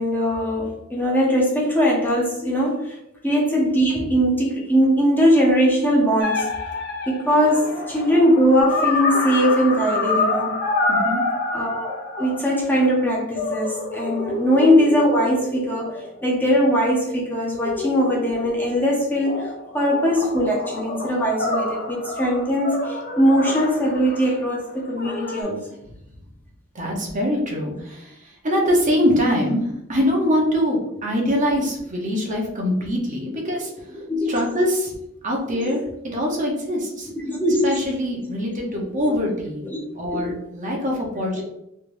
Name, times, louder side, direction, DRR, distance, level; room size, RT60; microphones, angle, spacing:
voice 1, 0.0-3.0 3.2-6.5 7.1-10.6 11.5-16.0 16.2-25.7 33.9-34.4 35.5-35.7 37.3-37.8 39.6-39.8 40.1-40.4 41.3-41.4, equal, 10° left, -3 dB, 0.7 m, -20 dB
sound 1, 6.2-13.0 13.4-16.6 17.5-18.8 19.2-24.4 25.0-25.4, left 2 dB, 50° left, 0.6 m, -28 dB
voice 2, 10.9-11.2 26.7-33.7 34.3-34.9 35.2-37.1 37.6-39.6 39.9-41.4, equal, 40° right, -1 dB, 0.8 m, -23 dB
3.3 x 3.2 x 2.5 m, 0.82 s
head